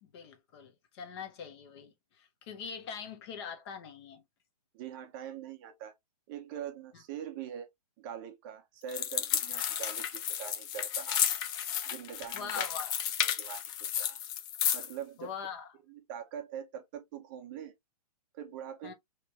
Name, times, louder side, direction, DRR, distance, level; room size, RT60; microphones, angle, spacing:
voice 1, 0.0-4.2 12.3-12.9 15.2-15.7 18.8-18.9, left 6 dB, 40° left, 1.2 m, -43 dB
voice 2, 4.7-6.0 6.3-7.7 8.0-11.2 11.9-12.7 13.2-13.6 14.0-14.2 14.7-15.3 15.9-17.7 18.3-18.9, right 9 dB, 30° right, 0.6 m, -43 dB
sound 1, 8.9-14.9, left 10 dB, 20° left, 0.5 m, -32 dB
3.2 x 3.2 x 2.8 m
hypercardioid pair, 145°, 20 cm